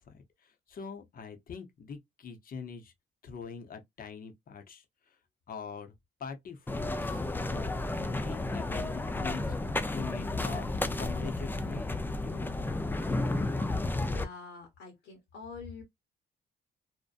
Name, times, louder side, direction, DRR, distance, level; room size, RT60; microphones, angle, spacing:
voice 1, 0.1-2.9 3.2-5.2 5.5-5.9 6.2-9.6 9.9-10.7 11.0-11.9 12.2-12.6, left 5 dB, 45° left, 0.7 m, -43 dB
sound 1, 6.7-14.2, left 2 dB, 10° left, 0.4 m, -32 dB
voice 2, 13.9-15.8, left 4 dB, 75° left, 1.1 m, -46 dB
2.7 x 2.1 x 2.4 m
cardioid pair, 90°, 20 cm